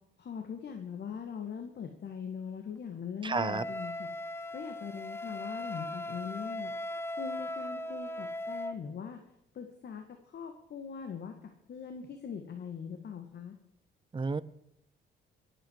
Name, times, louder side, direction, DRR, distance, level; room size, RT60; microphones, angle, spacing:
voice 1, 0.2-4.1 4.5-6.7 7.2-9.2 9.5-11.3 11.7-13.6, left 7 dB, 55° left, 5 dB, 1.8 m, -41 dB
voice 2, 3.2-3.6 14.1-14.4, right 4 dB, 25° right, 16 dB, 0.8 m, -31 dB
Wind instrument woodwind instrument, 3.3-8.8, left 1 dB, 10° left, 0.7 m, -38 dB
23.5 x 9.1 x 4.7 m, 0.80 s
cardioid pair, 90°, 20 cm